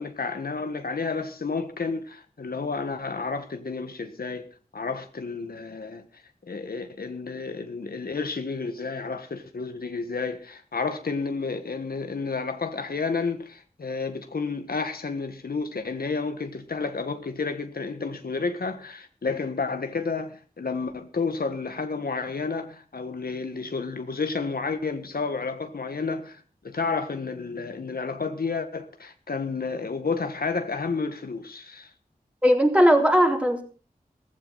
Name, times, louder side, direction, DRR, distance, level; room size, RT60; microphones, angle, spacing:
voice 1, 0.0-4.5 4.7-6.0 6.5-31.9, left 4 dB, 85° left, 1.5 m, -31 dB
voice 2, 32.4-33.6, equal, 10° right, 3.7 m, -18 dB
16.0 x 15.0 x 4.1 m
wide cardioid pair, 75°, 15 cm